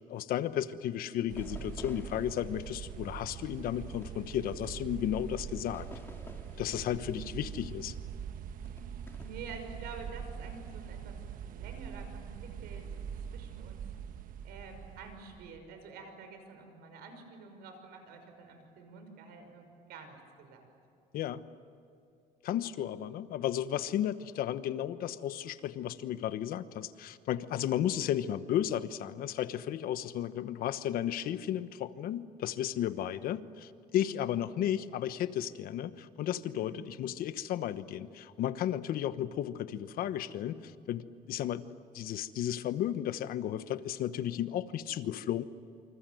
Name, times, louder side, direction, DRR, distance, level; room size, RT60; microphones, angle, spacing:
voice 1, 0.1-5.9 6.6-7.9 21.1-21.4 22.4-41.6 41.9-45.4, left 11 dB, 70° left, 12 dB, 1.1 m, -34 dB
sound 1, 1.3-15.6, right 8 dB, 60° right, 1.3 m, -43 dB
sound 2, 1.4-5.3 5.7-8.1 8.6-9.5, left 2 dB, 15° left, 2.1 m, -53 dB
voice 2, 7.0-7.5 8.7-8.8 9.2-13.0 13.3-13.8 14.4-20.7 34.0-34.4 36.4-36.8, right 4 dB, 85° right, 6 dB, 6.0 m, -49 dB
28.5 x 26.0 x 7.8 m, 2.5 s
cardioid pair, 140°, 16 cm